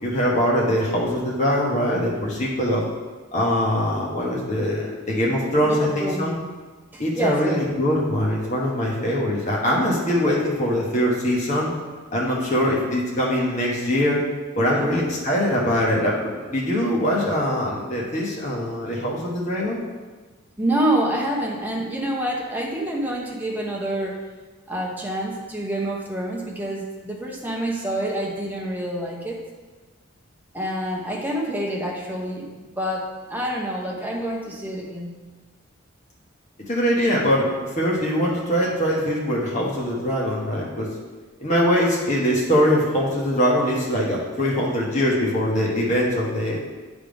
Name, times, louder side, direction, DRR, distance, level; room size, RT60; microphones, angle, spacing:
voice 1, 0.0-2.8 3.3-6.3 7.0-11.7 12.1-14.2 14.6-19.8 36.7-37.5 37.8-40.9 41.4-46.6, equal, 35° left, -4 dB, 1.2 m, -22 dB
voice 2, 5.6-6.3 6.9-7.6 14.6-14.9 20.6-24.2 24.7-29.4 30.5-35.1, right 1 dB, 10° right, -2 dB, 0.9 m, -27 dB
8.6 x 3.5 x 5.1 m, 1.3 s
head